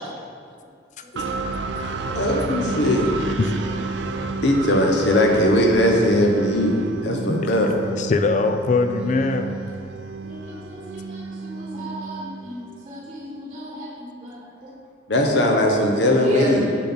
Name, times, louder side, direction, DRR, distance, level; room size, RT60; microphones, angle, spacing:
sound 1, 1.2-12.9, right 3 dB, 65° right, 0.4 m, -31 dB
voice 1, 2.1-3.1 4.4-7.7 15.1-16.7, left 1 dB, 65° left, 1 dB, 0.9 m, -19 dB
voice 2, 7.9-9.6, left 3 dB, 40° left, 8 dB, 0.3 m, -22 dB
voice 3, 10.2-14.7 16.2-16.8, equal, 30° right, -4 dB, 1.1 m, -34 dB
6.9 x 4.3 x 5.8 m, 2.2 s
head